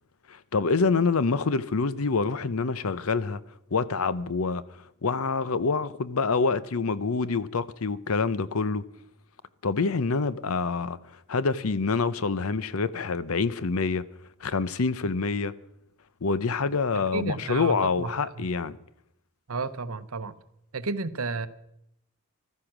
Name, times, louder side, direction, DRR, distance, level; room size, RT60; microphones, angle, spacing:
voice 1, 0.3-3.4 3.7-4.6 5.0-8.8 9.6-11.0 11.3-14.1 14.4-15.5 16.2-18.8, left 4 dB, 75° left, 0.7 m, -26 dB
voice 2, 16.9-18.5 19.5-20.4 20.7-21.5, right 3 dB, 75° right, 0.9 m, -32 dB
15.0 x 13.0 x 6.0 m
head